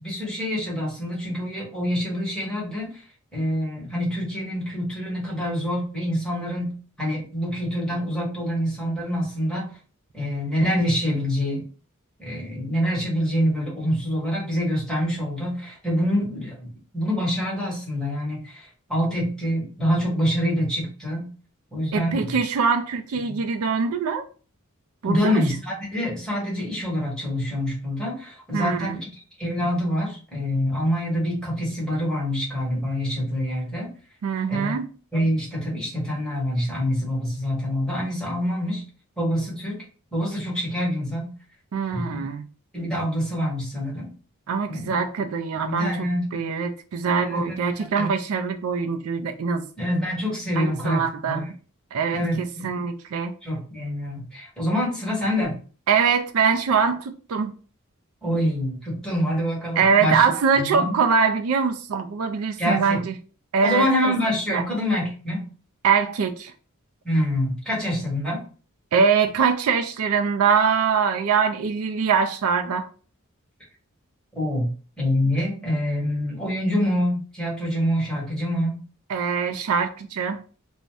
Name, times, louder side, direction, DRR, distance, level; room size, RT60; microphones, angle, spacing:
voice 1, 0.0-2.9 3.3-9.7 10.1-11.7 12.2-16.7 16.9-21.3 21.7-22.4 25.0-29.1 29.4-33.9 34.5-34.7 35.1-38.8 39.2-39.8 40.1-41.3 41.9-42.3 42.7-44.1 44.7-45.0 45.6-46.4 47.2-47.5 48.0-48.1 49.8-51.4 52.1-52.8 53.4-55.6 58.2-60.2 60.6-60.9 62.6-63.0 63.6-65.5 67.0-68.4 74.3-78.8, equal, 5° left, 1.3 m, -26 dB
voice 2, 21.9-24.2 25.0-25.5 28.5-29.0 34.2-34.9 41.7-42.5 44.5-46.0 46.3-49.6 50.6-51.5 51.9-53.3 55.9-57.6 59.8-63.1 63.5-64.1 64.5-64.6 65.8-66.5 68.9-72.9 79.1-80.4, right 6 dB, 85° right, 0.4 m, -23 dB
2.5 x 2.1 x 3.4 m
head